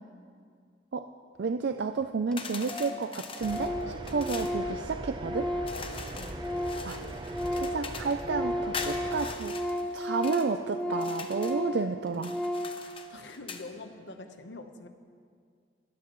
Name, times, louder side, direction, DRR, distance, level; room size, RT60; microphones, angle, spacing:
voice 1, 1.4-5.5 6.8-7.0 7.6-9.5 9.9-12.4, right 4 dB, 70° right, 8 dB, 0.4 m, -31 dB
Organ, 1.7-1.8 2.0-2.1 2.3-2.4 2.7-3.1 3.3-6.9 7.2-12.9, left 1 dB, 5° left, 0.6 m, -34 dB
sound 1, 2.4-4.6 5.7-8.2 8.7-10.5 10.9-11.6 12.1-13.7, left 5 dB, 30° left, 0.9 m, -42 dB
sound 2, 3.4-9.4, right 1 dB, 25° right, 0.8 m, -41 dB
voice 2, 6.2-6.5 13.1-14.9, left 2 dB, 85° left, 7 dB, 1.1 m, -44 dB
24.5 x 13.0 x 3.1 m, 2.1 s
head